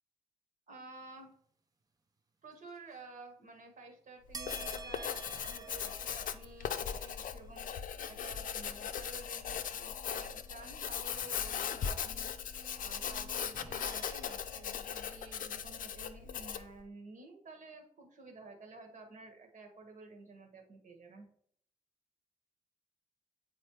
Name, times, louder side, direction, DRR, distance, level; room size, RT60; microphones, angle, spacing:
voice 1, 0.7-1.3 2.4-7.7 8.0-12.3 12.8-21.3, right 3 dB, 65° right, 3 dB, 1.6 m, -52 dB
Writing, 4.3-16.7, left 8 dB, 80° left, 0.5 m, -39 dB
sound 1, 4.3-14.9, right 4 dB, 25° right, 0.7 m, -52 dB
8.4 x 4.2 x 3.2 m, 0.63 s
wide cardioid pair, 160°, 14 cm